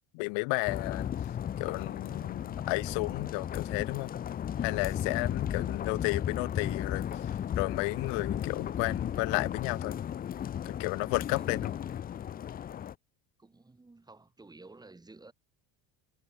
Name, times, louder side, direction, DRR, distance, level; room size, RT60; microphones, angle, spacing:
voice 1, 0.1-1.1 1.6-4.1 4.6-7.0 7.6-9.9 10.6-11.7, left 32 dB, 75° left, 1.5 m, -32 dB
sound 1, 0.7-12.9, left 9 dB, 20° left, 0.6 m, -35 dB
voice 2, 11.3-12.0 13.4-15.3, right 3 dB, 10° right, 7.7 m, -53 dB
cardioid pair, 180°, 43 cm